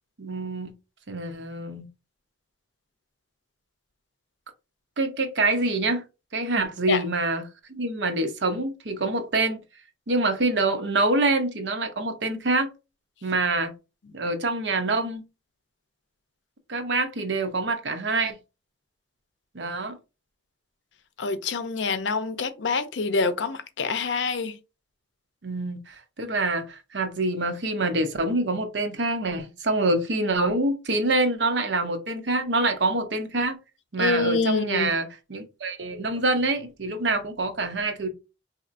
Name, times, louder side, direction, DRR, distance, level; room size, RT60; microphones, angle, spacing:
voice 1, 0.2-0.7 1.1-1.9 5.0-6.0 6.3-9.6 10.1-12.7 13.2-13.7 14.1-15.2 16.7-18.4 19.5-20.0 25.4-33.6 33.9-38.1, right 2 dB, 70° right, 0.7 m, -26 dB
voice 2, 21.2-24.5 34.0-34.9, left 4 dB, 75° left, 0.6 m, -26 dB
4.1 x 2.8 x 2.5 m
head